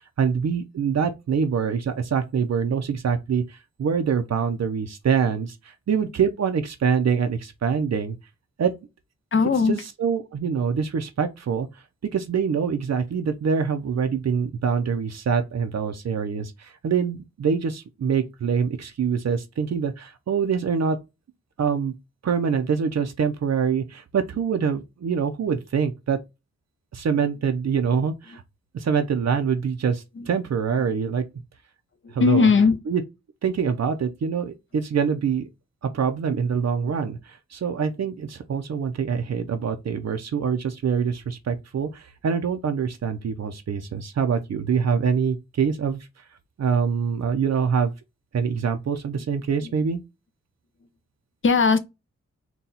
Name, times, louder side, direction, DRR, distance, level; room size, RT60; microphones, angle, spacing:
voice 1, 0.0-8.2 8.6-8.7 9.7-11.7 12.1-21.0 21.6-21.9 22.2-26.2 26.9-28.4 28.7-31.2 32.1-32.5 32.9-33.0 33.4-35.5 35.8-46.1 46.6-47.9 48.3-50.0, right 6 dB, 65° right, 0.6 m, -25 dB
voice 2, 9.3-9.8 30.2-30.3 32.0-32.8 51.4-51.8, left 4 dB, 45° left, 0.5 m, -18 dB
4.1 x 2.3 x 3.9 m
wide cardioid pair, 155°, 29 cm